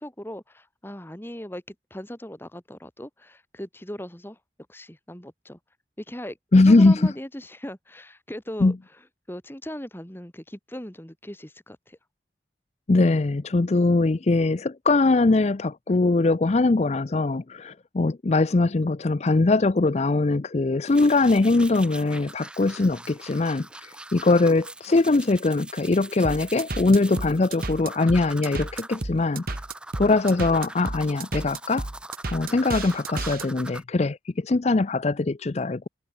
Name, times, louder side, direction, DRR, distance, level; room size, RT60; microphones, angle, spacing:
voice 1, 0.0-4.4 4.7-5.6 6.0-6.4 6.6-8.8 9.3-12.0, equal, 15° left, 2.0 m, -38 dB
voice 2, 6.5-7.1 8.6-8.7 12.9-29.4 30.0-31.9 32.3-35.9, left 3 dB, 40° left, 0.5 m, -21 dB
sound 1, 20.9-33.8, right 1 dB, 5° right, 1.0 m, -42 dB
sound 2, 26.2-33.5, right 2 dB, 55° right, 1.5 m, -32 dB
head